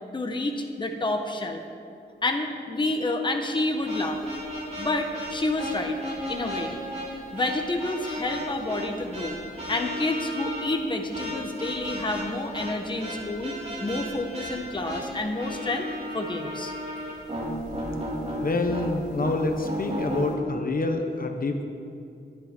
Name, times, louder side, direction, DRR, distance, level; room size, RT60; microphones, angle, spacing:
voice 1, 0.1-1.6 2.2-4.2 4.8-6.0 6.3-6.7 7.3-9.4 9.7-13.5 13.8-15.9 16.1-16.7, left 2 dB, 25° left, 3 dB, 1.1 m, -29 dB
sound 1, 3.8-20.3, equal, 35° right, 4.0 m, -34 dB
voice 2, 18.4-21.6, left 2 dB, 50° left, 4 dB, 1.2 m, -27 dB
21.5 x 11.0 x 4.5 m, 2.6 s
wide cardioid pair, 145°, 19 cm